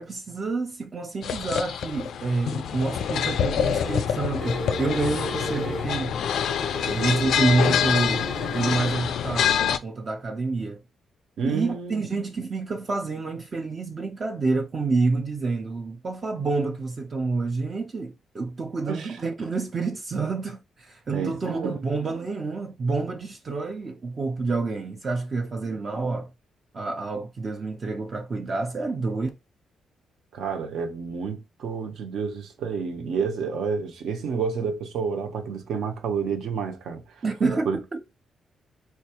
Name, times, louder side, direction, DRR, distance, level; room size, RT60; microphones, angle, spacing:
voice 1, 0.0-6.2 6.9-8.3 8.5-10.8 11.5-26.3 26.7-29.3 37.2-38.0, right 3 dB, 30° right, 0.4 m, -28 dB
sound 1, 1.2-9.8, left 8 dB, 70° left, 0.3 m, -26 dB
sound 2, 3.6-4.1 4.4-5.9 6.2-7.8 8.1-8.9, equal, 15° right, 0.9 m, -35 dB
voice 2, 11.4-12.0 18.9-19.2 21.1-21.8 30.3-37.2 37.7-37.8, right 5 dB, 70° right, 0.8 m, -30 dB
4.2 x 2.3 x 2.8 m
cardioid pair, 160°, 0 cm